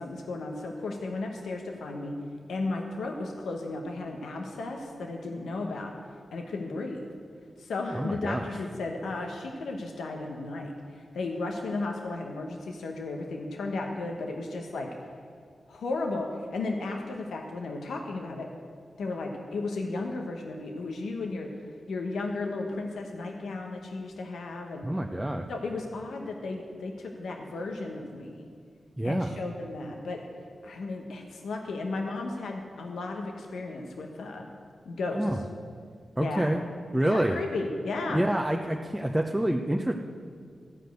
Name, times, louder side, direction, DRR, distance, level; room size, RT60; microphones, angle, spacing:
voice 1, 0.0-2.1 2.5-5.9 6.3-7.1 7.6-14.9 15.7-18.5 19.0-21.5 21.9-24.9 25.5-28.5 29.0-30.2 30.6-34.5 34.8-35.3 36.2-36.6 37.1-38.3, left 3 dB, 85° left, 2 dB, 1.0 m, -34 dB
voice 2, 7.9-8.5 24.8-25.4 29.0-29.4 35.1-35.4 36.2-36.6 36.9-37.4 38.1-39.9, right 1 dB, 10° right, 2 dB, 0.7 m, -27 dB
13.5 x 5.0 x 7.9 m, 2.1 s
cardioid pair, 45°, 0 cm